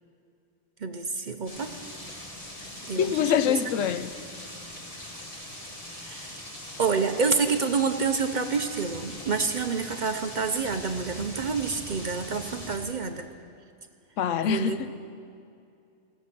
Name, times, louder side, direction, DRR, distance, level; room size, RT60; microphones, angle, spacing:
voice 1, 0.8-1.7 2.9-3.1 3.5-3.6 5.9-6.4 6.8-13.3 14.4-14.8, right 5 dB, 50° right, 0.6 m, -28 dB
sound 1, 1.5-12.8, left 1 dB, 30° left, 1.7 m, -41 dB
voice 2, 3.0-4.1 14.2-14.9, left 8 dB, 85° left, 1.0 m, -25 dB
15.5 x 13.5 x 5.9 m
omnidirectional pair, 1.3 m